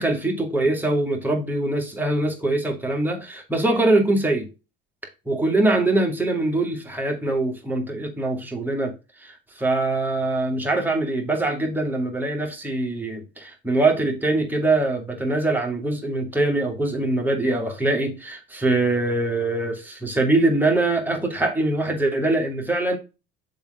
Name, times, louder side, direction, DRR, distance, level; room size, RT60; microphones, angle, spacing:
voice 1, 0.0-4.5 5.3-8.9 9.2-23.0, right 2 dB, 5° right, 2.3 m, -23 dB
7.0 x 3.7 x 5.0 m
supercardioid pair, 85°, 30 cm